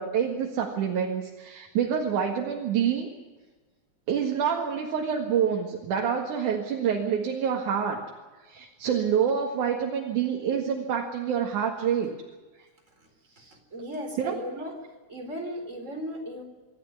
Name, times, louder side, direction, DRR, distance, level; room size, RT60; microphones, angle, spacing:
voice 1, 0.0-3.1 4.1-8.0 8.4-12.1 12.6-12.7 14.2-14.4, right 7 dB, 80° right, 1 dB, 3.3 m, -27 dB
voice 2, 13.4-14.8 15.1-16.4, equal, 25° right, 3 dB, 4.2 m, -36 dB
26.0 x 13.0 x 9.6 m, 1.3 s
omnidirectional pair, 3.5 m